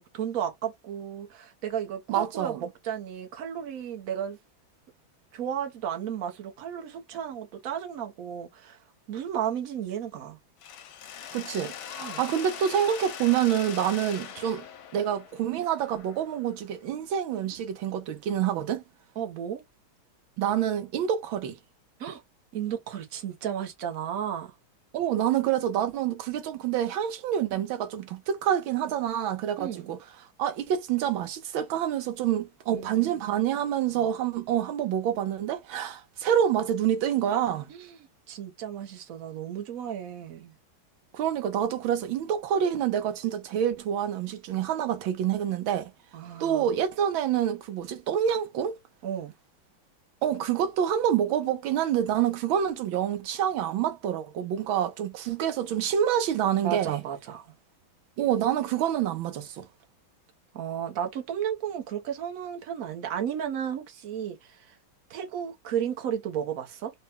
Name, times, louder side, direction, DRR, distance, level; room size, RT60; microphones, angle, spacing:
voice 1, 0.0-4.4 5.3-8.8 9.1-10.4 12.0-12.2 19.2-19.6 22.0-22.2 22.5-24.5 29.6-29.9 32.7-33.4 33.9-34.1 37.7-40.5 46.1-46.8 49.0-49.3 56.6-57.5 60.5-64.8 65.1-66.9, right 9 dB, 55° right, 1.1 m, -34 dB
voice 2, 2.1-2.6 11.3-14.6 14.9-18.8 20.4-21.6 24.9-30.0 30.4-37.7 41.1-45.9 46.4-48.8 50.2-57.0 58.2-59.7, right 10 dB, 75° right, 1.6 m, -27 dB
Mechanisms, 10.6-16.5, left 9 dB, 80° left, 1.4 m, -41 dB
4.2 x 2.3 x 3.5 m
omnidirectional pair, 2.3 m